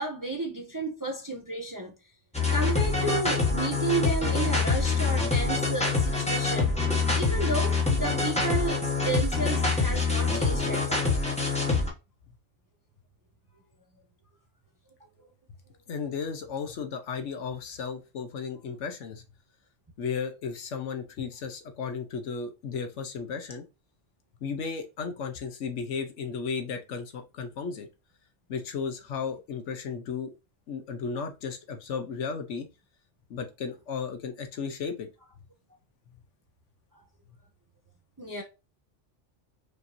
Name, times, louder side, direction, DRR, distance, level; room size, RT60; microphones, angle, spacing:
voice 1, 0.0-1.9 2.5-6.8 7.1-11.2 38.2-38.4, right 2 dB, 25° right, 0.5 m, -32 dB
sound 1, 2.3-11.9, left 4 dB, 5° left, 1.0 m, -25 dB
voice 2, 15.9-19.2 20.0-23.6 24.4-27.9 28.5-30.3 30.7-32.7 33.3-35.1, left 5 dB, 75° left, 1.1 m, -34 dB
5.0 x 2.6 x 2.9 m
omnidirectional pair, 1.2 m